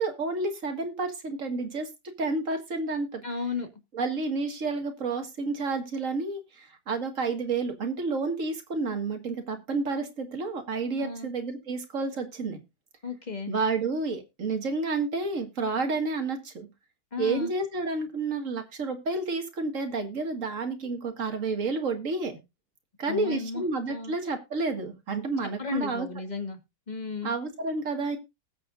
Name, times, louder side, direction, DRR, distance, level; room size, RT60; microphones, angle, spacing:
voice 1, 0.0-1.9 2.2-3.2 3.9-12.6 13.5-16.7 17.2-22.3 23.0-26.1 27.2-28.2, right 3 dB, 45° right, 2.1 m, -30 dB
voice 2, 3.2-3.7 11.0-11.3 13.0-13.5 17.1-17.5 23.1-24.1 25.6-26.6 26.9-27.3, left 4 dB, 25° left, 1.6 m, -34 dB
19.5 x 7.1 x 2.5 m
omnidirectional pair, 1.9 m